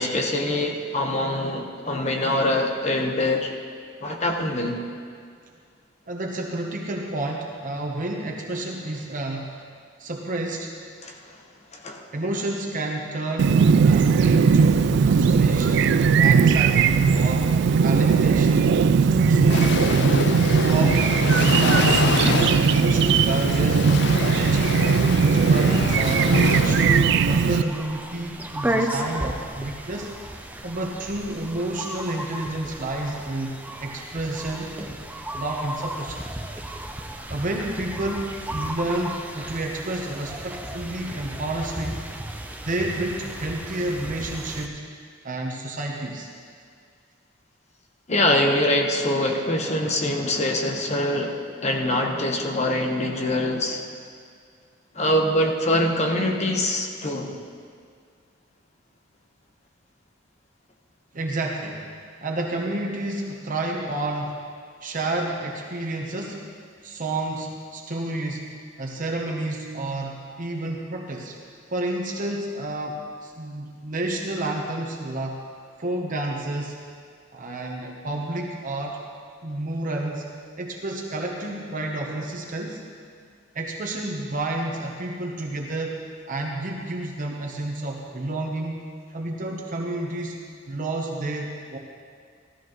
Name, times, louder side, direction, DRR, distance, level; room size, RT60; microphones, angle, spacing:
voice 1, 0.0-3.5 4.0-4.8 11.0-11.4 11.7-12.1 48.1-53.9 54.9-57.4, left 1 dB, 35° left, 2 dB, 1.1 m, -24 dB
voice 2, 6.1-9.5 10.0-10.8 12.1-17.5 17.8-23.8 24.2-30.1 30.6-33.5 33.8-34.8 35.3-36.2 37.3-42.1 42.6-44.8 45.2-46.3 61.1-61.9 62.2-64.4 64.8-66.5 66.8-68.5 68.8-71.4 71.7-75.4 75.8-76.8 77.3-79.0 79.4-82.8 83.5-88.8 89.1-90.4 90.7-91.8, right 2 dB, 45° right, 0 dB, 0.9 m, -30 dB
Chirp tweet, 13.4-27.6, right 5 dB, 65° right, 0.3 m, -19 dB
sound 1, 19.5-27.0, left 5 dB, 60° left, 0.4 m, -27 dB
sound 2, 27.0-44.7, right 1 dB, 10° right, 0.6 m, -34 dB
15.5 x 13.5 x 3.1 m, 2.1 s
head